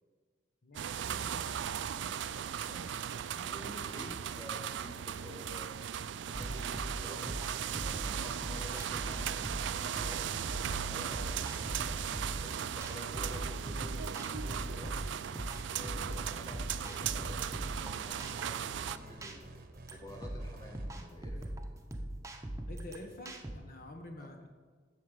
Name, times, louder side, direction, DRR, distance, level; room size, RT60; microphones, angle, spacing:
voice 1, 0.6-1.6 22.7-24.5, left 1 dB, 55° left, 4 dB, 1.1 m, -48 dB
sound 1, 0.7-19.0, right 9 dB, 85° right, 0.4 m, -37 dB
voice 2, 2.6-3.0 3.4-5.9 6.2-7.4 7.8-9.4 9.7-11.8 12.4-15.1 15.7-19.5 19.9-21.6 24.2-24.3, left 1 dB, 20° left, 0 dB, 1.7 m, -50 dB
sound 2, 6.3-23.5, right 1 dB, 15° right, 0.8 m, -41 dB
sound 3, 7.1-21.3, right 1 dB, 50° right, 0.9 m, -51 dB
8.4 x 6.6 x 7.5 m, 1.5 s
head